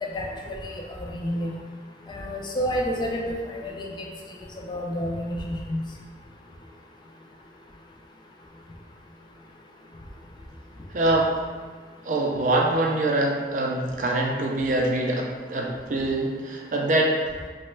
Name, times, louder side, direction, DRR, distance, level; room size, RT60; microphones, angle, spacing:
voice 1, 0.0-0.6 1.0-1.5 2.1-3.9 4.7-5.4 5.7-5.8, equal, 25° left, 0 dB, 0.3 m, -29 dB
voice 2, 10.9-11.3 12.0-17.2, right 1 dB, 45° right, 0 dB, 0.4 m, -24 dB
2.9 x 2.2 x 3.1 m, 1.5 s
head